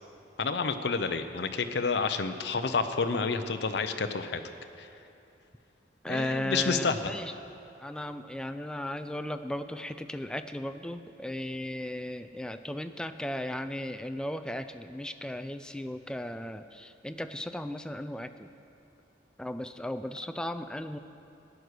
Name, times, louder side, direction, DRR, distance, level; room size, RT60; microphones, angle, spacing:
voice 1, 0.4-4.4 4.8-4.9 6.1-7.0, left 4 dB, 65° left, 8 dB, 0.6 m, -29 dB
voice 2, 6.0-7.3 7.8-18.5 19.4-21.0, left 1 dB, 5° left, 9 dB, 0.3 m, -36 dB
14.0 x 9.5 x 6.4 m, 2.8 s
head